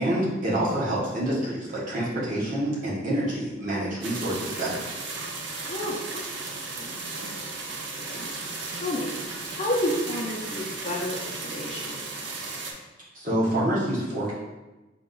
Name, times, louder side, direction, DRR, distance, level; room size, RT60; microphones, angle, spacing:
voice 1, 0.0-4.9 13.1-14.3, right 1 dB, 45° right, -6 dB, 1.1 m, -27 dB
sound 1, 4.0-12.7, right 3 dB, 80° right, 0.6 m, -35 dB
voice 2, 5.6-6.4 6.7-7.0 7.7-8.3 8.7-9.1 9.5-12.5, left 1 dB, 35° left, -3 dB, 0.6 m, -32 dB
3.9 x 2.3 x 3.8 m, 1.1 s
head